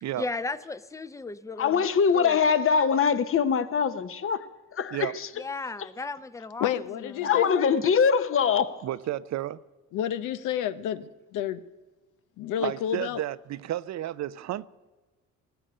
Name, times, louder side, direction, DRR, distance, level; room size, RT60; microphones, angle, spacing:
voice 1, 0.2-1.9 2.1-2.4 5.4-7.4 7.7-7.8, left 3 dB, 10° left, 0.6 m, -36 dB
voice 2, 1.6-4.5 4.7-5.3 7.2-8.8, left 6 dB, 45° left, 0.9 m, -23 dB
voice 3, 6.6-7.8 9.9-11.0 11.3-11.6 12.4-13.2, left 10 dB, 90° left, 0.7 m, -30 dB
voice 4, 8.8-9.6 12.6-14.7, right 13 dB, 65° right, 0.5 m, -32 dB
18.5 x 6.9 x 8.7 m
cardioid pair, 90°, 30 cm